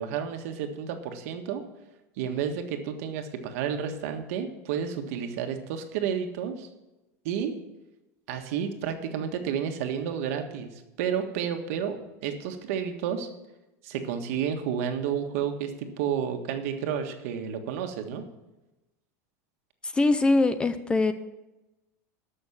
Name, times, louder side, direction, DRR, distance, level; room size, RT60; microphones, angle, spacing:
voice 1, 0.0-1.6 2.2-6.7 7.2-7.5 8.3-10.7 11.0-13.3 13.8-18.3, right 8 dB, 65° right, 6 dB, 1.6 m, -31 dB
voice 2, 19.8-21.1, left 2 dB, 10° left, 12 dB, 0.4 m, -22 dB
12.5 x 6.3 x 7.3 m, 1.0 s
supercardioid pair, 155°, 8 cm